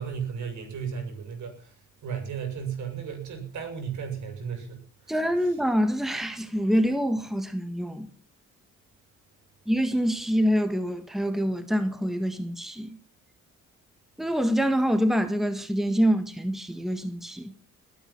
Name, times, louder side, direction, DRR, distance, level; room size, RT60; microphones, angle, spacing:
voice 1, 0.0-1.7 2.0-5.6, right 7 dB, 70° right, 7.3 m, -35 dB
voice 2, 5.1-8.1 9.7-13.0 14.2-17.5, equal, ahead, 1.7 m, -26 dB
21.0 x 9.4 x 6.1 m
cardioid pair, 90°, 30 cm